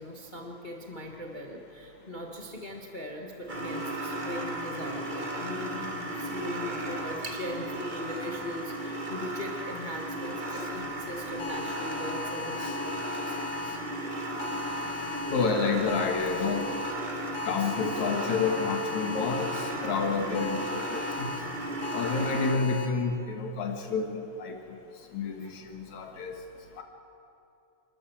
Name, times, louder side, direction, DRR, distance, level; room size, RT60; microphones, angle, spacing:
voice 1, 0.0-13.8 20.3-20.6, equal, 45° left, 1 dB, 0.6 m, -40 dB
sound 1, 3.5-22.5, right 1 dB, 65° right, 0.4 m, -35 dB
sound 2, 11.4-13.8 14.4-15.4 15.9-16.9 17.3-19.7 20.3-21.4 21.8-22.9, left 5 dB, 80° left, 3.5 m, -38 dB
voice 2, 15.3-16.7 17.4-21.4 21.9-24.6 25.1-26.4 26.8-26.9, left 4 dB, 60° left, 4 dB, 2.9 m, -29 dB
29.5 x 12.5 x 7.2 m, 2.6 s
omnidirectional pair, 3.8 m